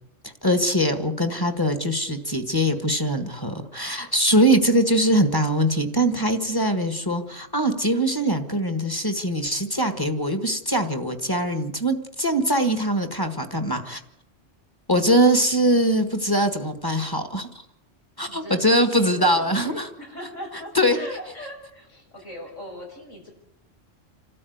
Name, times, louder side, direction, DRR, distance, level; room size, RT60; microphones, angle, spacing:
voice 1, 0.2-14.0 14.9-17.5 18.2-19.9 20.7-21.0, right 1 dB, 20° left, 7 dB, 1.8 m, -22 dB
voice 2, 18.3-23.3, left 1 dB, 85° left, 1 dB, 7.2 m, -39 dB
27.5 x 13.0 x 9.5 m, 0.77 s
omnidirectional pair, 1.3 m